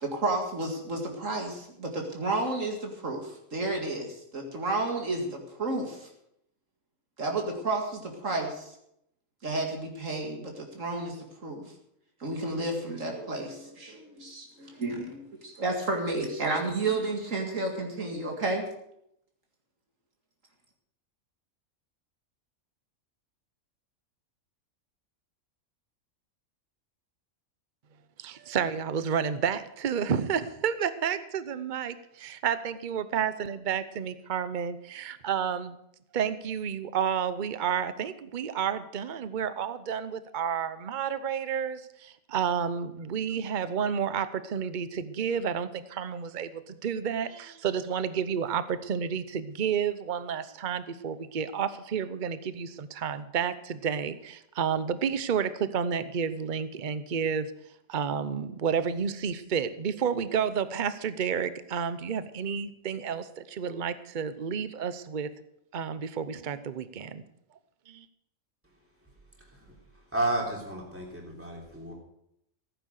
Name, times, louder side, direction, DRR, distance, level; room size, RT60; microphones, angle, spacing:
voice 1, 0.0-6.1 7.2-8.7 9.4-11.7 12.2-18.6, right 2 dB, 65° right, 2 dB, 2.4 m, -31 dB
voice 2, 28.2-35.8 36.1-57.5 57.9-65.3 65.7-67.2 67.9-68.1, right 7 dB, 40° right, 13 dB, 0.9 m, -30 dB
voice 3, 68.6-71.9, right 1 dB, 10° right, -2 dB, 3.4 m, -34 dB
15.5 x 9.4 x 6.5 m, 0.76 s
omnidirectional pair, 1.4 m